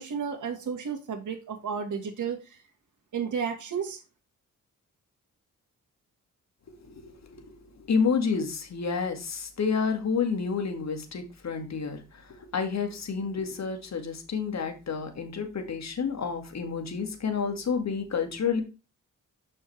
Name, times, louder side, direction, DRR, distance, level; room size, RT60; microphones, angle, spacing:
voice 1, 0.0-2.6 3.1-4.0, right 6 dB, 60° right, 3 dB, 1.8 m, -32 dB
voice 2, 6.8-7.5 7.9-12.2 12.5-18.6, left 5 dB, 55° left, 5 dB, 1.9 m, -29 dB
6.7 x 5.5 x 3.3 m, 0.30 s
cardioid pair, 75°, 33 cm